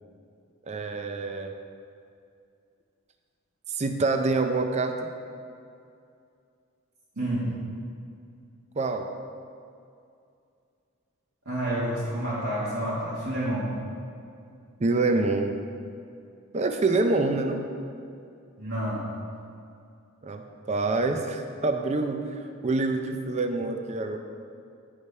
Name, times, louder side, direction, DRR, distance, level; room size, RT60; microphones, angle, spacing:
voice 1, 0.7-1.5 3.7-5.1 8.8-9.1 14.8-15.6 16.5-17.6 20.2-20.4 20.7-22.2 22.6-24.2, right 3 dB, 30° right, 6 dB, 0.5 m, -26 dB
voice 2, 7.2-7.6 11.5-13.7 18.6-19.0, right 1 dB, 80° right, -9 dB, 1.7 m, -29 dB
11.0 x 5.0 x 5.5 m, 2.4 s
head